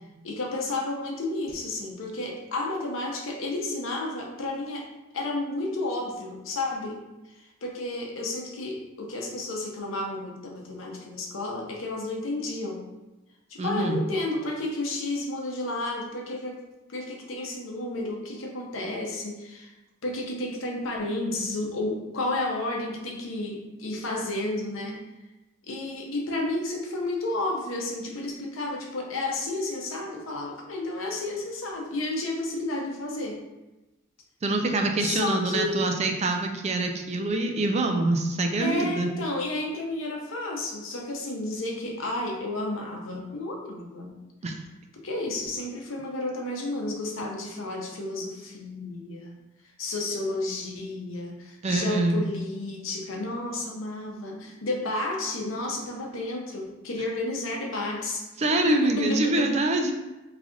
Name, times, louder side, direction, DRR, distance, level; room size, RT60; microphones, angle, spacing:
voice 1, 0.2-4.9 5.1-7.0 7.6-12.9 13.5-16.6 16.9-19.7 20.0-25.1 25.7-33.4 35.0-35.9 38.6-44.2 45.0-49.3 49.8-58.2 58.7-59.5, left 2 dB, 75° left, 0 dB, 0.7 m, -31 dB
voice 2, 13.6-14.0 34.4-39.1 44.4-44.5 51.6-52.2 58.4-59.9, right 2 dB, 35° right, 4 dB, 0.4 m, -25 dB
3.2 x 2.5 x 3.7 m, 1.0 s
head